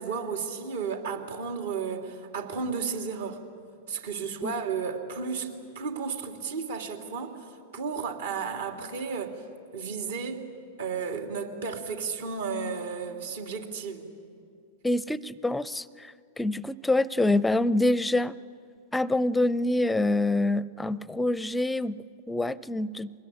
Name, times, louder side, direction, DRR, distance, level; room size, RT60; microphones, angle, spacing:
voice 1, 0.0-3.4 3.9-9.3 9.7-10.4 10.8-14.0, right 5 dB, 70° right, 4 dB, 2.9 m, -33 dB
voice 2, 14.8-18.4 18.9-22.0 22.3-23.1, left 2 dB, 5° left, 19 dB, 0.5 m, -26 dB
23.5 x 20.0 x 9.9 m, 2.4 s
hypercardioid pair, 100°, 0 cm